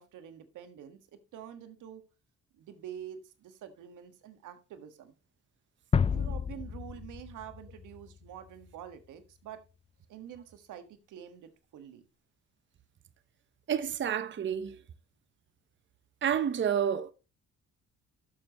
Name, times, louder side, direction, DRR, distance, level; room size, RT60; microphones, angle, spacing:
voice 1, 0.0-2.0 2.5-5.1 6.1-9.6 10.1-12.1, right 9 dB, 85° right, 1.6 m, -47 dB
sound 1, 5.9-8.8, left 6 dB, 20° left, 0.4 m, -31 dB
voice 2, 13.7-14.8 16.2-17.1, right 8 dB, 40° right, 0.8 m, -29 dB
12.0 x 7.2 x 3.0 m
cardioid pair, 90°, 30 cm